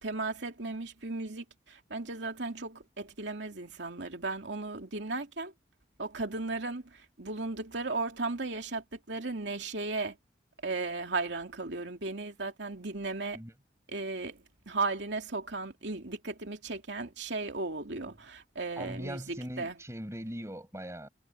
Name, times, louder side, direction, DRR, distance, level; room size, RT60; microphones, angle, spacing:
voice 1, 0.0-5.5 6.0-10.2 10.6-13.4 13.9-14.4 14.7-19.8, right 3 dB, 85° right, 2.6 m, -36 dB
voice 2, 18.8-21.1, equal, 15° right, 6.6 m, -40 dB
head